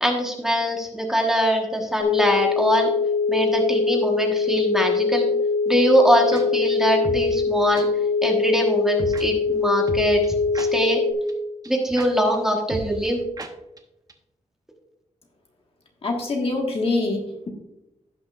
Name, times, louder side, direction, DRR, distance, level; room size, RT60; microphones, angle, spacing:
voice 1, 0.0-2.9 3.3-5.3 5.7-7.9 8.2-10.2 10.5-11.0 11.7-13.2, equal, 5° right, 0 dB, 1.2 m, -22 dB
sound 1, 2.0-11.1, left 5 dB, 80° left, 0.9 m, -23 dB
sound 2, 6.3-6.4 7.0-7.3 7.7-7.8 9.0-9.2 9.9-11.0 11.3-11.4 11.6-11.7 12.0-12.1 12.3-12.4 12.7-13.1 13.4-13.5 13.8-13.9 14.1-14.2, right 2 dB, 30° right, 0.8 m, -33 dB
voice 2, 16.0-17.5, left 2 dB, 50° left, 1 dB, 1.5 m, -25 dB
16.5 x 6.1 x 2.4 m, 0.91 s
wide cardioid pair, 175°, 13 cm